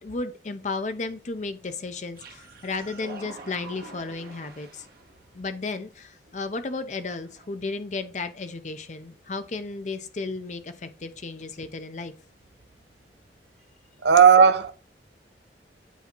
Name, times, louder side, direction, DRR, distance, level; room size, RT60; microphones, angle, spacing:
voice 1, 0.0-4.9 5.3-12.1, left 3 dB, 40° left, 0.6 m, -34 dB
sound 1, 2.2-5.3 6.3-6.4 7.0-7.5, right 3 dB, 55° right, 1.1 m, -46 dB
voice 2, 14.0-14.7, right 7 dB, 80° right, 0.6 m, -15 dB
8.3 x 2.8 x 4.4 m
head